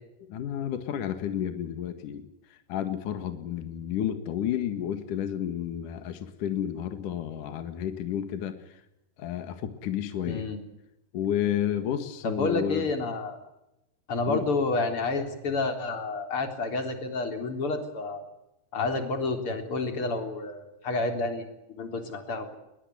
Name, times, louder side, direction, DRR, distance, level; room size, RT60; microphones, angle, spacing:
voice 1, 0.2-8.8 9.2-10.5 11.1-12.9 14.3-14.5, left 10 dB, 60° left, 9 dB, 2.9 m, -31 dB
voice 2, 10.3-10.6 12.2-13.4 14.1-18.2 18.7-21.5 21.8-22.5, left 3 dB, 35° left, 6 dB, 4.2 m, -29 dB
23.0 x 21.5 x 9.5 m, 0.90 s
omnidirectional pair, 4.7 m